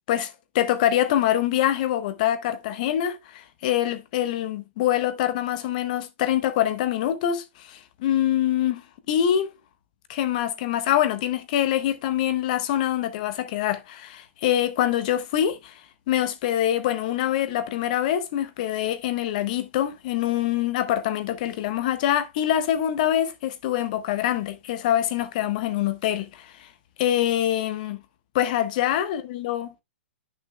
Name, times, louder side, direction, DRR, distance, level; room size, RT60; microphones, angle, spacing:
voice 1, 0.1-8.8 9.1-9.5 10.1-15.8 16.1-26.7 27.0-28.0 28.3-29.8, left 11 dB, 40° left, 1.1 m, -25 dB
10.5 x 6.5 x 2.2 m
hypercardioid pair, 160°, 7 cm